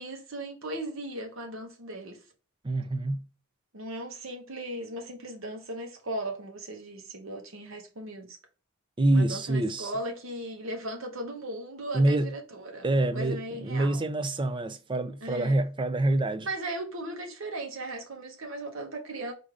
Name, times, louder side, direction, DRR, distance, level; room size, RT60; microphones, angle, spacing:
voice 1, 0.0-2.2 3.7-8.4 9.1-14.0 15.2-15.7 16.4-19.3, right 1 dB, 65° right, 1.0 m, -37 dB
voice 2, 2.6-3.3 9.0-9.9 11.9-12.3 12.8-16.5, right 2 dB, 25° right, 0.4 m, -26 dB
4.8 x 2.7 x 3.6 m
head